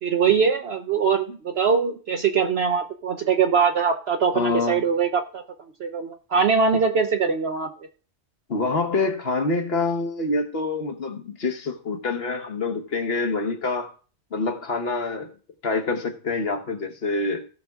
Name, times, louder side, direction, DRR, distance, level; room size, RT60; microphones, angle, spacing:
voice 1, 0.0-5.4 5.8-7.7, right 6 dB, 60° right, 1.0 m, -22 dB
voice 2, 4.3-4.9 8.5-13.9 14.3-15.3 15.6-17.5, left 3 dB, 55° left, 1.4 m, -26 dB
16.5 x 5.8 x 3.6 m
omnidirectional pair, 1.3 m